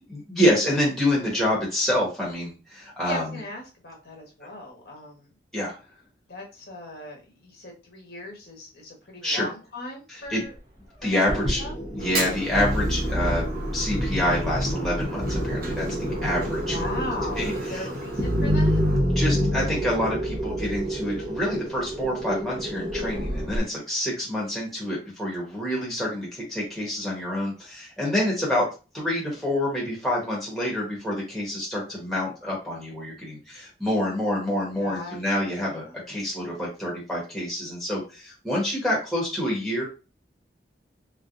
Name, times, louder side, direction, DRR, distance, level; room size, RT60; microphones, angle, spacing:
voice 1, 0.1-3.4 5.5-5.8 9.2-9.5 10.1-10.4 11.0-11.6 11.9-16.8 17.3-17.9 19.1-28.7 28.9-39.8, left 1 dB, ahead, -4 dB, 1.3 m, -27 dB
voice 2, 3.1-5.3 6.3-10.5 11.0-11.7 16.6-18.8 34.8-35.9, left 2 dB, 60° left, -1 dB, 1.2 m, -38 dB
sound 1, 11.3-23.6, equal, 25° right, 1.2 m, -27 dB
Fire, 12.0-19.0, right 2 dB, 50° right, 0.9 m, -38 dB
3.6 x 3.4 x 2.6 m, 0.32 s
head